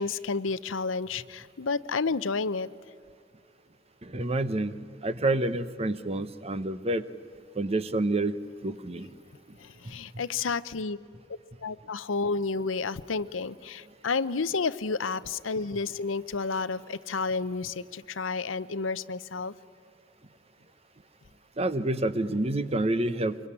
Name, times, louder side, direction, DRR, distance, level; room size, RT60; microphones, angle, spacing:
voice 1, 0.0-2.7 9.6-11.0 11.6-19.5, left 4 dB, 80° left, 16 dB, 0.7 m, -31 dB
voice 2, 4.0-4.8 5.0-7.0 7.5-8.4 8.6-9.1 9.8-9.9 21.6-23.4, right 2 dB, 30° right, 13 dB, 0.9 m, -28 dB
25.0 x 22.5 x 9.8 m, 2.4 s
head